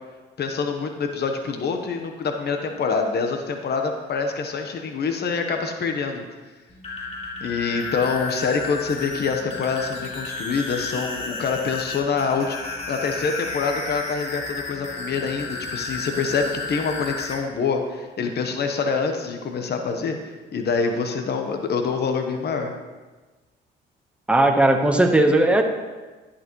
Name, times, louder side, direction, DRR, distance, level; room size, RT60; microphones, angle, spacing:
voice 1, 0.4-6.2 7.4-22.7, left 5 dB, 55° left, 4 dB, 1.1 m, -26 dB
sound 1, 6.7-17.4, left 3 dB, 35° left, 3.4 m, -32 dB
voice 2, 24.3-25.6, right 2 dB, 5° right, 3 dB, 1.1 m, -17 dB
11.0 x 11.0 x 3.1 m, 1.3 s
cardioid pair, 90°, 20 cm